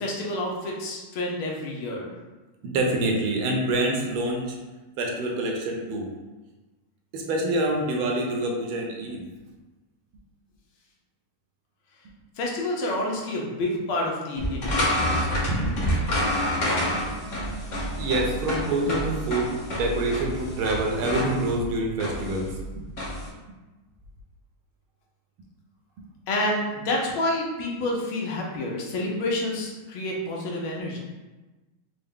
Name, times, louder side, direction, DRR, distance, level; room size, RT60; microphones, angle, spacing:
voice 1, 0.0-2.1 12.4-15.2 26.3-31.0, left 1 dB, 80° left, -2 dB, 1.6 m, -29 dB
voice 2, 2.6-4.6 5.0-6.1 7.1-9.3 15.4-22.8 26.0-26.1, right 2 dB, 80° right, 1 dB, 1.4 m, -27 dB
sound 1, 14.4-23.3, equal, 55° left, 0.9 m, -28 dB
4.5 x 2.1 x 3.5 m, 1.2 s
omnidirectional pair, 2.4 m